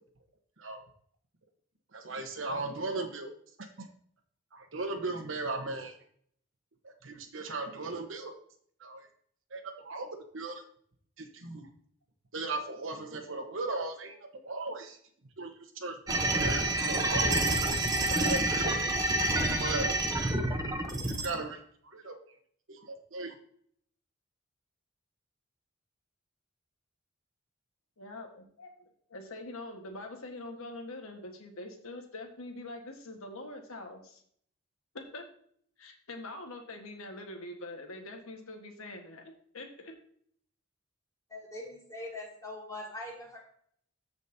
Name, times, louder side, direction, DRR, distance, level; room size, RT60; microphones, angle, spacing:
voice 1, 1.9-3.3 3.8-3.9 4.5-5.9 6.8-8.3 8.8-9.1 9.5-10.6 11.2-11.7 12.3-15.0 15.4-17.5 18.1-18.8 19.6-20.0 20.8-22.2 22.7-23.3, right 2 dB, 65° right, 5 dB, 1.2 m, -37 dB
sound 1, 16.1-21.3, right 1 dB, 15° right, 0.8 m, -28 dB
voice 2, 28.0-28.7 29.1-34.2 34.9-35.3 35.8-39.9, left 2 dB, 90° left, 3 dB, 1.6 m, -44 dB
voice 3, 41.3-43.4, left 1 dB, 15° left, -4 dB, 2.9 m, -42 dB
14.0 x 5.2 x 2.8 m, 0.62 s
head